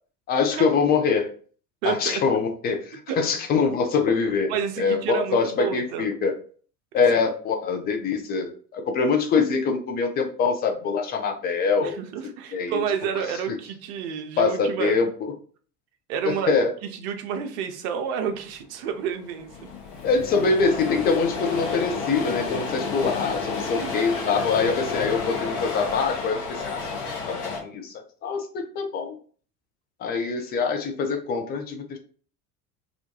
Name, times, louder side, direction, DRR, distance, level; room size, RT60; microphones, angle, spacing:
voice 1, 0.3-1.3 1.8-6.3 6.9-12.0 12.5-12.8 13.5-13.6 14.4-15.3 16.2-16.7 20.0-26.8 27.3-29.2 30.0-32.0, left 5 dB, 25° left, 5 dB, 0.4 m, -24 dB
voice 2, 1.8-2.2 3.1-3.2 4.5-6.1 7.0-7.1 11.8-15.0 16.1-16.5 16.9-19.5 23.7-24.0, right 8 dB, 50° right, 6 dB, 0.5 m, -29 dB
sound 1, 18.8-18.9 19.1-27.6, left 4 dB, 55° left, 0.9 m, -31 dB
2.4 x 2.2 x 2.7 m, 0.43 s
figure-of-eight pair, 70°, 45 cm